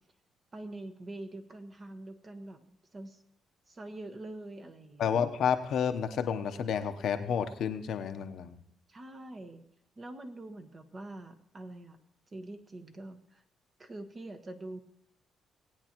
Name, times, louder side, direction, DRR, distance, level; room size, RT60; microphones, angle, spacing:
voice 1, 0.5-3.2 3.7-5.1 8.9-9.6 10.0-12.0 12.3-13.4 13.8-14.8, right 2 dB, 35° right, 7 dB, 1.2 m, -45 dB
voice 2, 5.0-8.6, left 7 dB, 70° left, 7 dB, 0.8 m, -30 dB
18.5 x 8.9 x 3.0 m, 0.75 s
cardioid pair, 90°, 0 cm